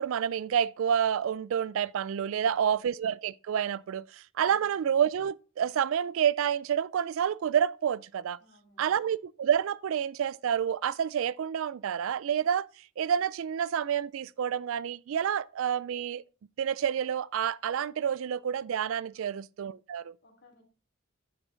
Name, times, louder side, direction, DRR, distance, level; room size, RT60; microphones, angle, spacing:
voice 1, 0.0-4.0 4.4-8.4 8.8-12.7 13.0-16.2 16.6-20.1, right 8 dB, 70° right, 0.3 m, -29 dB
voice 2, 2.3-2.8 4.4-4.7 8.4-8.9 19.1-19.4 20.2-20.6, left 1 dB, 50° left, 2.8 m, -62 dB
10.5 x 7.0 x 3.9 m
head